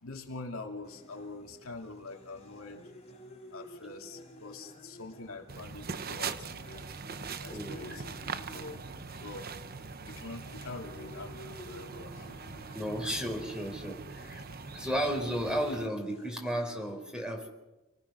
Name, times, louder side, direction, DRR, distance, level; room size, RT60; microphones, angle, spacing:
voice 1, 0.0-2.9 3.5-6.9 7.4-8.8 9.2-9.5 10.0-12.3 14.7-14.9, left 3 dB, 80° left, 2 dB, 2.7 m, -45 dB
sound 1, 0.8-16.9, equal, 30° left, 4.1 m, -53 dB
sound 2, 5.5-15.9, right 5 dB, 45° right, 0.9 m, -42 dB
voice 2, 7.5-8.0 12.7-14.4 14.7-17.5, equal, 5° right, 4 dB, 4.6 m, -34 dB
28.5 x 19.5 x 6.2 m, 1.0 s
head